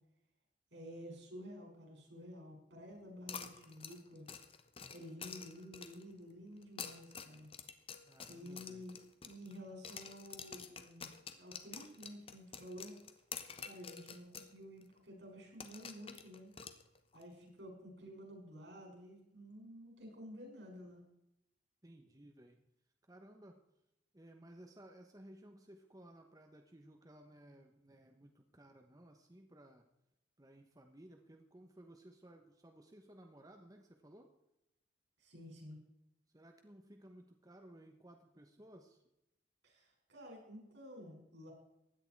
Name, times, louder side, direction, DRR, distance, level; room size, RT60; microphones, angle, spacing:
voice 1, 0.7-4.3 4.9-7.5 8.3-9.0 9.2-11.1 11.4-13.0 13.6-16.5 17.1-21.0 35.2-35.8 39.6-41.5, equal, 75° right, 1 dB, 6.0 m, -51 dB
sound 1, 3.3-6.1 6.6-9.6 9.8-14.5 14.8-14.9 15.6-17.2, left 7 dB, 30° left, 1.0 m, -49 dB
voice 2, 8.1-8.8 17.4-17.5 21.8-22.6 23.1-23.6 24.1-29.8 30.4-34.3 36.3-39.0, right 1 dB, 20° right, 4 dB, 1.0 m, -58 dB
16.0 x 11.0 x 4.6 m, 0.85 s
head